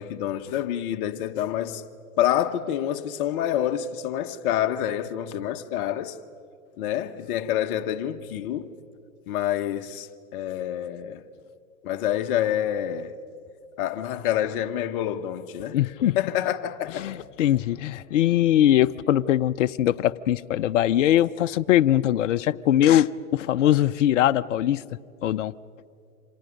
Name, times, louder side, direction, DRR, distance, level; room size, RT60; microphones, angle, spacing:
voice 1, 0.0-1.8 2.2-6.1 6.8-8.7 9.3-11.2 11.8-13.1 13.8-15.8 16.1-17.1, left 11 dB, 40° left, 1.2 m, -27 dB
voice 2, 15.7-16.2 17.0-24.8 25.2-25.5, left 12 dB, 60° left, 0.7 m, -21 dB
28.5 x 26.0 x 5.2 m
hypercardioid pair, 120°, 42 cm